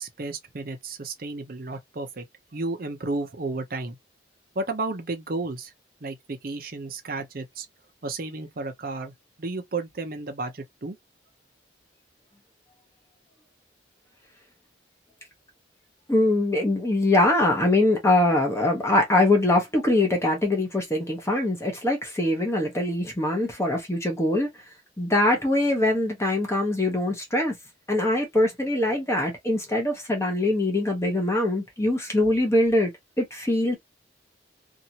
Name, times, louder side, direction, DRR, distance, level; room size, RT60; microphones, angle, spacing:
voice 1, 0.0-2.2 2.5-4.0 4.6-5.7 6.0-7.7 8.0-9.1 9.4-11.0, right 3 dB, 50° right, 0.6 m, -32 dB
voice 2, 16.1-24.5 25.0-27.5 27.9-32.9 33.2-33.8, left 1 dB, 15° left, 0.9 m, -23 dB
2.8 x 2.5 x 2.8 m
head